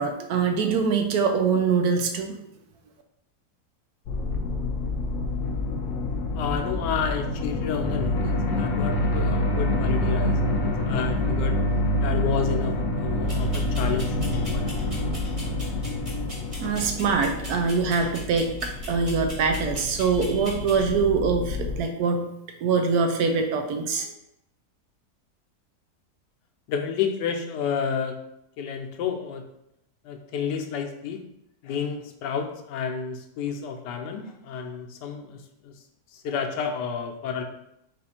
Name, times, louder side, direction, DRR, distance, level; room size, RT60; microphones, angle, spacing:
voice 1, 0.0-2.4 16.6-22.3 22.6-24.1, right 5 dB, 70° right, 5 dB, 1.0 m, -24 dB
sound 1, 4.1-21.8, left 1 dB, 65° left, 1.0 m, -27 dB
voice 2, 6.4-11.6 12.0-14.8 26.7-28.2 28.6-29.4 30.0-31.2 31.6-35.7 36.1-37.4, left 6 dB, 90° left, 4 dB, 1.3 m, -30 dB
sound 2, 13.2-20.8, equal, 20° right, 1.2 m, -42 dB
4.1 x 2.5 x 4.2 m, 0.79 s
omnidirectional pair, 1.8 m